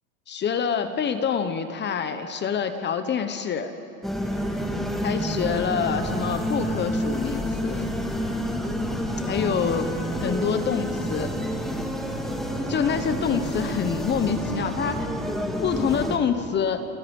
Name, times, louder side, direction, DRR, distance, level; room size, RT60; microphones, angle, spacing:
voice 1, 0.3-3.7 5.0-7.9 9.3-9.9 10.2-11.3 12.7-15.1 15.6-16.9, left 7 dB, 25° left, 9 dB, 1.2 m, -26 dB
sound 1, 4.0-16.2, equal, ahead, 1.9 m, -29 dB
29.5 x 25.5 x 5.5 m, 2.9 s
supercardioid pair, 135°, 42 cm